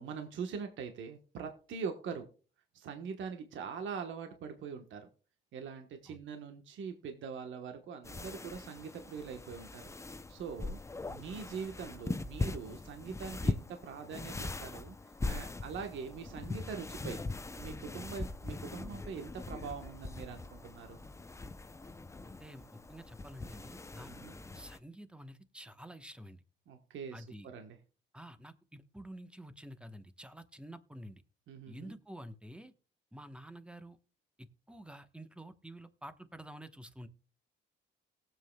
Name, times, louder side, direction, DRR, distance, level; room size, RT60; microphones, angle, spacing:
voice 1, 0.0-2.3 2.7-5.1 5.5-9.8 10.3-10.8 11.1-15.0 15.3-17.2 17.5-21.0 24.1-24.4 26.7-27.8 31.5-31.9, right 6 dB, 75° right, 5 dB, 1.2 m, -43 dB
sound 1, 8.0-24.8, left 3 dB, 15° left, 0.6 m, -41 dB
voice 2, 22.2-26.4 27.1-27.5 28.1-31.2 31.7-32.7 33.1-34.0 34.4-37.1, right 1 dB, 5° right, 9 dB, 1.0 m, -49 dB
18.5 x 7.6 x 2.3 m, 0.37 s
cardioid pair, 90°, 20 cm